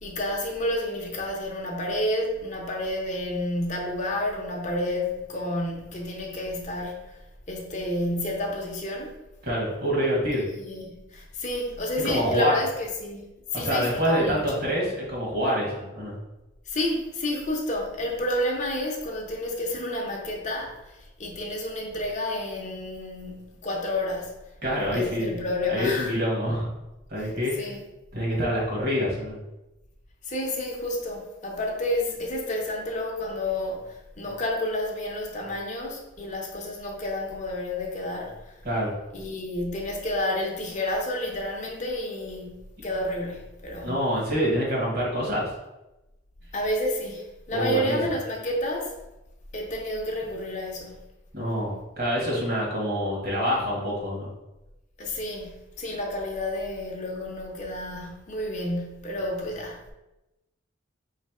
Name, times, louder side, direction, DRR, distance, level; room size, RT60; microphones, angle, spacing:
voice 1, 0.0-7.2 7.5-9.2 10.6-14.7 16.7-24.4 24.9-26.1 27.2-27.8 30.2-38.5 39.1-44.1 46.5-49.0 49.5-51.0 55.0-59.8, left 1 dB, 35° left, 0 dB, 0.7 m, -30 dB
voice 2, 9.4-10.5 12.0-12.5 13.5-16.2 24.6-25.4 25.7-26.7 27.1-27.6 28.1-29.4 38.6-38.9 43.8-45.5 47.5-48.0 51.3-54.3, equal, 50° right, -3 dB, 1.5 m, -26 dB
3.4 x 3.3 x 4.7 m, 0.98 s
head